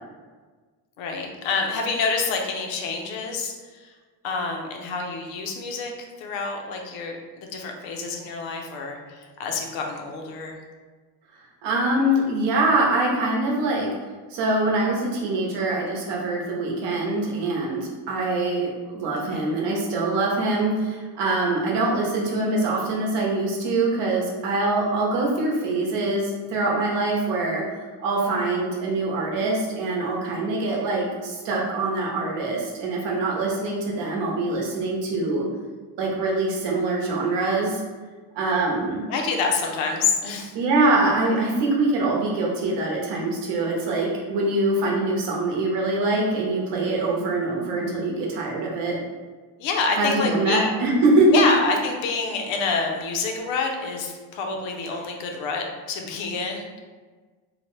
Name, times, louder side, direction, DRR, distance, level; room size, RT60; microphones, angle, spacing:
voice 1, 1.0-3.9 4.2-10.6 19.3-19.4 39.1-40.5 49.6-50.8 51.3-56.7, left 4 dB, 85° left, 2 dB, 0.6 m, -27 dB
voice 2, 11.6-13.9 14.3-35.4 36.0-37.8 38.3-39.0 40.5-49.0 50.0-51.5, right 2 dB, 70° right, -2 dB, 0.8 m, -24 dB
2.8 x 2.1 x 3.0 m, 1.4 s
cardioid pair, 175°, 44 cm